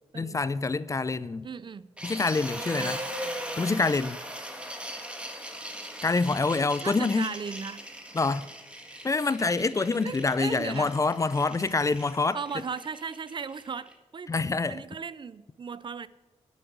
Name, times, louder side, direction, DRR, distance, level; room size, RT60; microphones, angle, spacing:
voice 1, 0.2-1.5 2.0-3.0 3.6-4.2 6.0-7.3 8.1-8.5 9.0-12.4 14.3-14.8, left 3 dB, 25° left, 0.4 m, -26 dB
voice 2, 1.4-1.9 2.7-3.0 6.8-7.8 10.0-10.9 12.3-14.3 14.7-16.1, right 6 dB, 40° right, 0.5 m, -37 dB
sound 1, 2.0-13.9, equal, 10° right, 1.8 m, -39 dB
11.5 x 7.4 x 7.8 m
wide cardioid pair, 110°, 12 cm